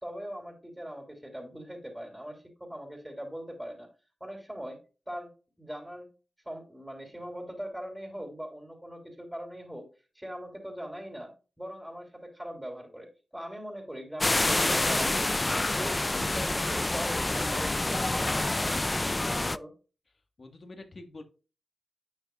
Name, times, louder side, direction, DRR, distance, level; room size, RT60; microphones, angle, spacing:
voice 1, 0.0-3.9 4.2-4.8 5.1-5.3 5.6-6.1 6.4-9.9 10.1-11.3 11.6-15.1 15.6-19.7, equal, 5° right, 3 dB, 3.2 m, -41 dB
sound 1, 14.2-19.6, left 2 dB, 30° left, 0.4 m, -27 dB
voice 2, 20.4-21.2, left 2 dB, 50° left, 7 dB, 1.7 m, -46 dB
10.0 x 6.3 x 2.4 m, 0.33 s
cardioid pair, 40°, 0 cm